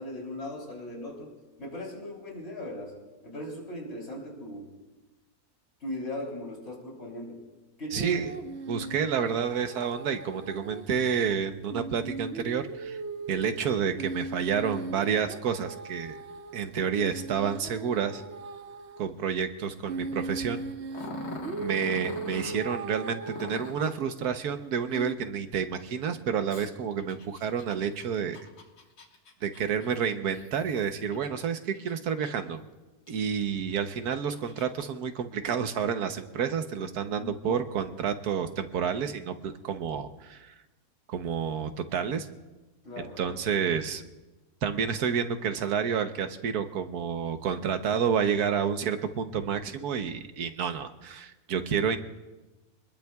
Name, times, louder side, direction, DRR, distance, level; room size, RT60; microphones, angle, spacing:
voice 1, 0.0-1.3 1.6-2.9 3.2-4.7 5.8-7.4 7.8-8.3 13.3-13.7 37.2-37.6 42.8-43.4, left 1 dB, 40° left, -2 dB, 3.8 m, -38 dB
sound 1, 7.9-10.8 11.1-11.2 11.7-19.0 19.9-24.1 24.9-25.1, right 3 dB, 55° right, 1.0 m, -39 dB
voice 2, 7.9-8.3 8.7-13.0 13.3-16.2 16.5-18.2 19.0-20.6 21.6-28.4 29.4-32.6 33.1-40.5 41.1-42.3 43.0-44.0 44.6-52.0, right 7 dB, 85° right, 8 dB, 1.4 m, -29 dB
Growling, 20.9-22.6 23.3-23.9 26.5-31.3 31.7-32.5 33.1-33.2 33.8-34.9, left 4 dB, 85° left, 2.0 m, -44 dB
27.0 x 21.0 x 2.3 m, 1.1 s
omnidirectional pair, 1.6 m